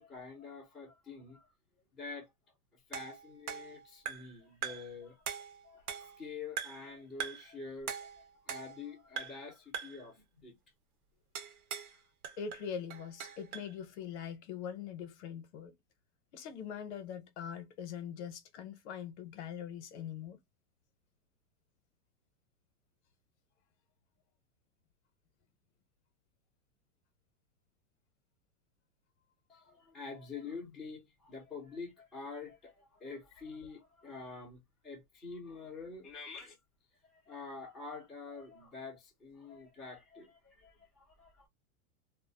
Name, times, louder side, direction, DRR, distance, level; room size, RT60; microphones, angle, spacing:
voice 1, 0.0-1.5 1.9-2.3 2.9-10.6 29.5-36.6 37.0-41.5, left 4 dB, ahead, 0.5 m, -47 dB
sound 1, 2.9-4.4 4.6-5.0 5.3-6.2 6.6-6.9 7.2-7.5 7.9-8.9 9.2-9.5 9.7-10.1 11.4-12.0 12.2-13.7, right 7 dB, 75° right, 0.9 m, -42 dB
voice 2, 12.4-15.7 16.3-20.4, left 8 dB, 50° left, 0.7 m, -42 dB
2.4 x 2.0 x 2.5 m
supercardioid pair, 155°, 45 cm